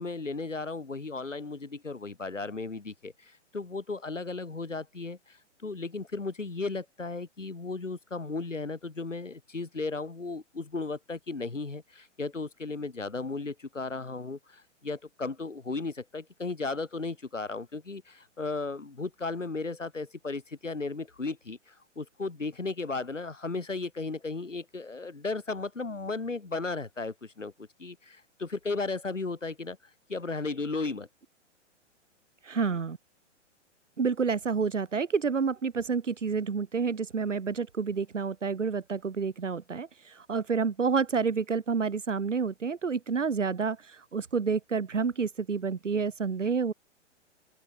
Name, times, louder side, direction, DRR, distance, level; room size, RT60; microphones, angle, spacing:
voice 1, 0.0-29.8 30.1-31.1, left 3 dB, 85° left, 6.5 m, -35 dB
voice 2, 32.4-33.0 34.0-46.7, right 5 dB, 80° right, 2.6 m, -29 dB
open air
figure-of-eight pair, 120°, 36 cm